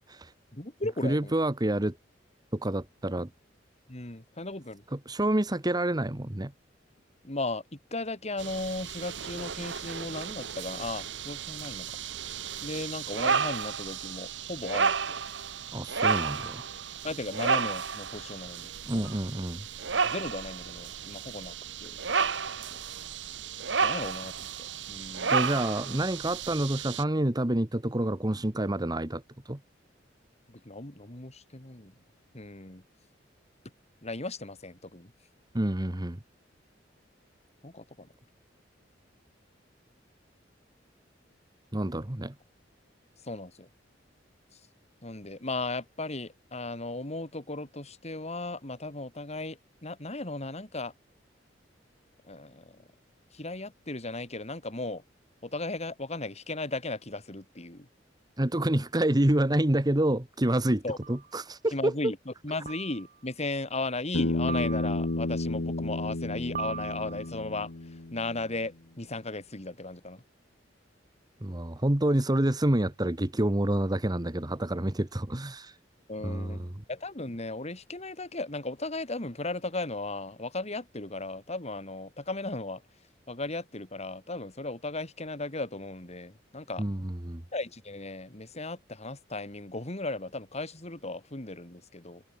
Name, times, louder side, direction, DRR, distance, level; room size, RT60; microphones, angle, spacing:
voice 1, 0.5-1.3 3.9-4.8 7.2-12.0 12.6-15.2 17.0-19.1 20.0-21.5 21.8-22.0 23.8-25.5 30.5-31.9 32.3-32.8 34.0-35.1 37.6-38.1 43.2-43.7 45.0-50.9 52.3-52.8 53.3-55.0 55.4-57.9 60.8-61.0 61.7-70.2 76.1-82.8 83.3-86.8 87.5-92.2, left 2 dB, 35° left, 2.9 m, -36 dB
voice 2, 1.0-2.0 2.5-3.3 4.9-6.5 15.7-16.7 18.8-19.7 25.3-29.2 29.5-29.6 35.5-36.2 41.7-42.3 58.4-60.8 61.1-61.9 71.4-75.7 76.2-76.7 86.8-87.4, right 1 dB, 20° right, 1.3 m, -28 dB
sound 1, 8.4-27.0, right 5 dB, 70° right, 1.4 m, -32 dB
sound 2, 59.4-59.5 61.0-61.4 62.7-63.2 64.5-65.3 66.6-67.5, right 6 dB, 50° right, 2.0 m, -40 dB
Bass guitar, 64.1-68.5, left 2 dB, 70° left, 1.2 m, -31 dB
head